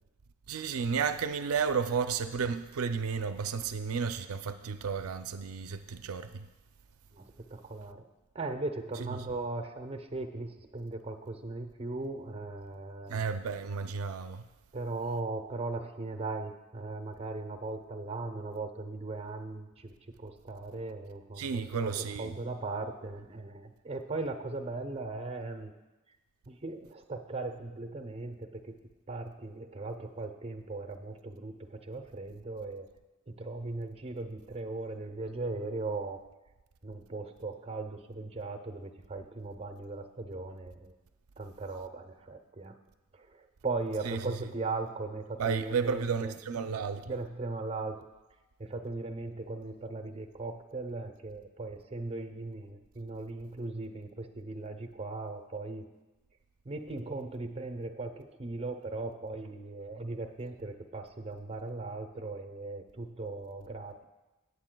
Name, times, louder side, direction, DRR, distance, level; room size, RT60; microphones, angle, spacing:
voice 1, 0.5-6.5 13.1-14.4 21.4-22.3 44.0-44.2 45.4-47.1, right 6 dB, 85° right, 0.4 m, -32 dB
voice 2, 7.1-8.1 8.3-13.2 14.7-19.9 20.2-25.7 26.5-28.7 29.1-32.9 33.3-36.2 36.8-40.9 41.4-42.8 43.1-46.3 47.1-48.0 48.6-55.9 56.6-64.0, right 3 dB, 30° right, 0.7 m, -38 dB
18.0 x 8.4 x 2.3 m
head